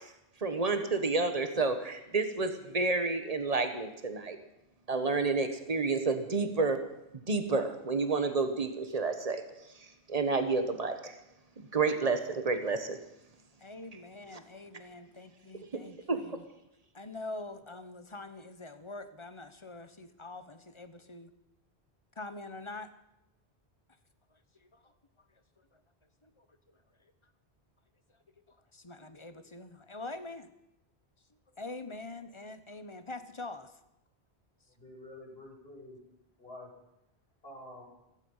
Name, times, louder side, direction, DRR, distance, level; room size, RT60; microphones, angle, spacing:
voice 1, 0.4-4.4 4.9-6.8 7.3-9.4 10.1-11.1 11.7-13.0 16.1-16.2, right 3 dB, 35° right, 8 dB, 1.6 m, -29 dB
voice 2, 13.6-16.4 16.9-21.3 22.2-22.9 24.6-24.9 26.2-26.4 28.5-30.5 31.6-33.7, left 2 dB, 30° left, 11 dB, 1.0 m, -44 dB
voice 3, 34.7-36.0 36.4-36.7 37.4-37.9, left 1 dB, 65° left, -3 dB, 6.8 m, -48 dB
16.0 x 16.0 x 5.7 m, 0.86 s
omnidirectional pair, 1.1 m